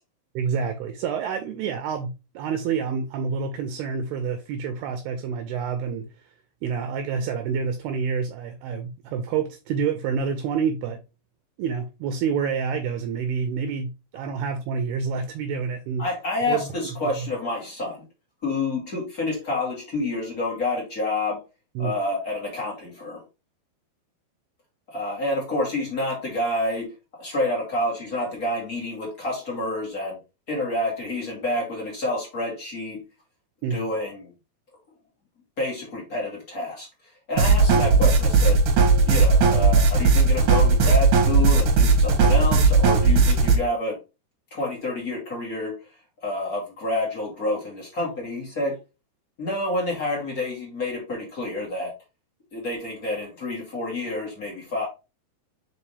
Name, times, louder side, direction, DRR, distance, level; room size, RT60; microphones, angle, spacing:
voice 1, 0.4-6.1 6.6-11.0 11.6-16.0 16.5-16.7 17.2-17.3 21.8-21.9 33.6-33.9, right 6 dB, 80° right, 2.5 m, -28 dB
voice 2, 16.0-18.0 18.4-21.4 21.8-23.2 24.9-30.2 30.5-33.0 33.7-34.3 35.6-36.9 37.3-38.6 39.1-44.0 44.5-45.9 46.2-48.8 49.4-51.9 52.5-54.9, left 2 dB, 30° left, 1.6 m, -28 dB
sound 1, 37.4-43.6, right 3 dB, 60° right, 2.2 m, -17 dB
5.7 x 5.2 x 3.2 m
omnidirectional pair, 5.1 m